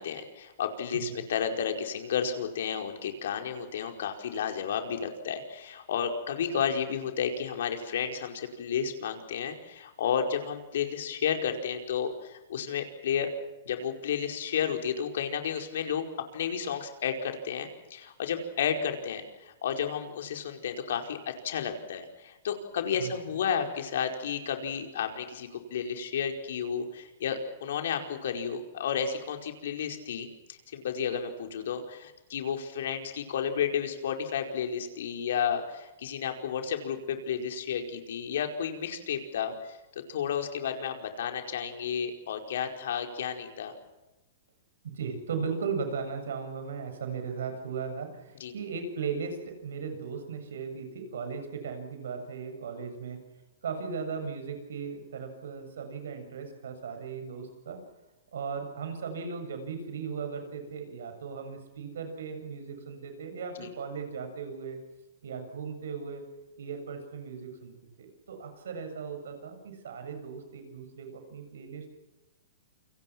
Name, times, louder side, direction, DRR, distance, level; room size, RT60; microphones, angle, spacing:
voice 1, 0.0-13.3 13.6-16.0 16.3-43.7 48.4-48.5 63.5-63.7, left 7 dB, 70° left, 5 dB, 4.9 m, -32 dB
voice 2, 0.9-1.2 23.0-23.1 44.8-53.2 53.6-57.8 58.3-64.8 65.2-66.2 66.6-71.9, right 5 dB, 85° right, 6 dB, 7.5 m, -37 dB
29.0 x 24.5 x 6.1 m, 1.0 s
hypercardioid pair, 155°, 0 cm